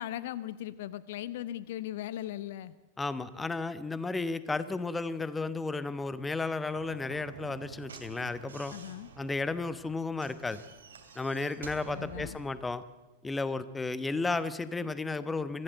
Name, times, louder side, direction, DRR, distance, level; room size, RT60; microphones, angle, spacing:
voice 1, 0.0-2.7 8.7-9.1 11.9-12.4, left 13 dB, 55° left, 17 dB, 0.7 m, -38 dB
voice 2, 3.0-8.7 9.2-10.6 11.1-12.8 13.2-15.6, left 3 dB, 10° left, 15 dB, 1.0 m, -33 dB
Slam / Knock, 6.7-12.5, right 5 dB, 65° right, 2.6 m, -49 dB
23.5 x 15.5 x 8.0 m, 1.1 s
figure-of-eight pair, 90°, 0 cm